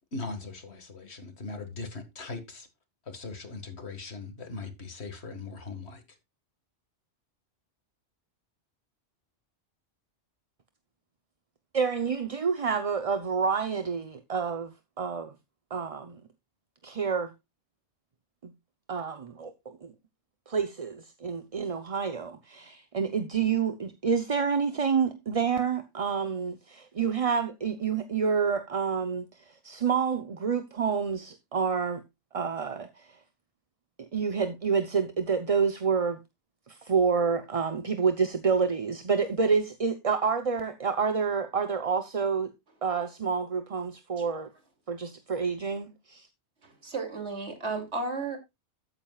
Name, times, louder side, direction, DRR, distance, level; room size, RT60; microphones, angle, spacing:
voice 1, 0.1-2.7 3.1-6.2, left 3 dB, 65° left, 2.1 m, -40 dB
voice 2, 11.7-15.3 15.7-16.2 16.8-17.3 18.4-18.5 18.9-19.9 20.5-32.0 32.3-33.2 34.0-36.2 36.7-42.5 42.8-44.5 44.9-46.3, right 6 dB, 35° right, 0.8 m, -28 dB
voice 3, 46.6-48.4, right 3 dB, 75° right, 3.1 m, -33 dB
13.5 x 8.9 x 2.4 m
omnidirectional pair, 1.2 m